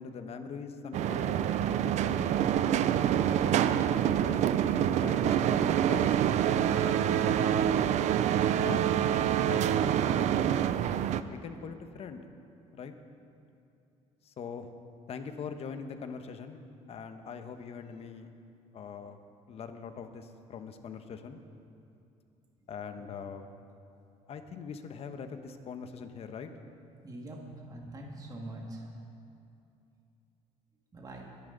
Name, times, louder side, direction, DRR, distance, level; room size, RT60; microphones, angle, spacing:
voice 1, 0.0-2.2 3.1-4.4 5.0-6.2 6.8-7.8 8.5-8.9 9.4-10.5 11.3-12.3 12.7-12.9 14.2-14.7 15.1-16.6 16.9-18.3 18.7-19.2 19.5-21.4 22.7-23.5 24.3-26.5, left 6 dB, 50° left, 8 dB, 1.2 m, -42 dB
sound 1, 0.9-11.2, right 10 dB, 60° right, 0.6 m, -26 dB
voice 2, 27.0-29.0 30.9-31.2, right 1 dB, 30° right, -1 dB, 2.1 m, -43 dB
24.0 x 10.5 x 4.0 m, 2.6 s
cardioid pair, 105°, 13 cm